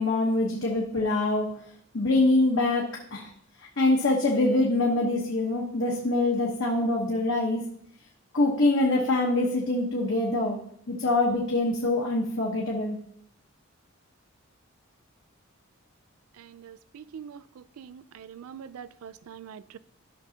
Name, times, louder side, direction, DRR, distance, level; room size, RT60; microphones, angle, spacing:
voice 1, 0.0-1.5 1.9-3.3 3.8-7.6 8.3-10.6 10.9-13.0, left 2 dB, 60° left, 1.1 m, -24 dB
voice 2, 16.5-17.4 17.8-19.8, right 7 dB, 85° right, 0.4 m, -44 dB
13.0 x 6.1 x 2.8 m
head